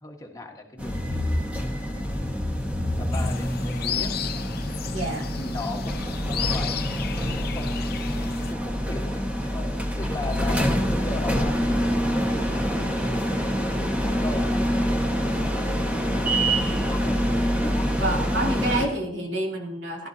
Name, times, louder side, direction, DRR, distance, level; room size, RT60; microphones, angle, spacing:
voice 1, 0.0-1.6 1.9-2.5 3.0-4.1 5.4-7.9 8.5-14.6 15.4-17.2 17.5-17.9, left 2 dB, 20° left, 1 dB, 1.6 m, -39 dB
sound 1, 0.8-18.9, equal, 10° right, 1.5 m, -26 dB
sound 2, 3.1-8.5, left 7 dB, 55° left, 0.8 m, -33 dB
voice 2, 4.9-5.3 18.0-20.1, right 1 dB, 70° right, -1 dB, 2.9 m, -28 dB
17.5 x 13.0 x 2.9 m, 0.75 s
head